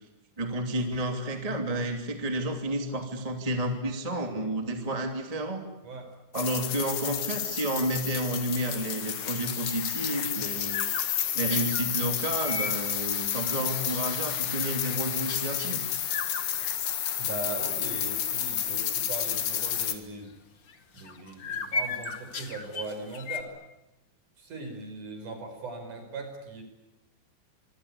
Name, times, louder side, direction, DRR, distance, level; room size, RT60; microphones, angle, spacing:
voice 1, 0.4-5.6 6.3-10.8 11.3-15.8, right 1 dB, 10° right, 4 dB, 2.1 m, -31 dB
voice 2, 5.8-6.1 17.2-20.3 20.9-23.5 24.4-26.6, right 3 dB, 50° right, 6 dB, 6.2 m, -39 dB
sound 1, 6.4-20.0, left 10 dB, 65° left, 3.6 m, -31 dB
sound 2, 9.5-11.9 12.3-12.8 13.2-13.8 14.2-14.9 15.3-15.8 16.1-17.5 17.9-18.0 18.4-18.6 19.1-19.3 20.7-23.4, left 4 dB, 40° left, 1.7 m, -37 dB
26.5 x 24.0 x 8.5 m, 0.95 s
omnidirectional pair, 4.7 m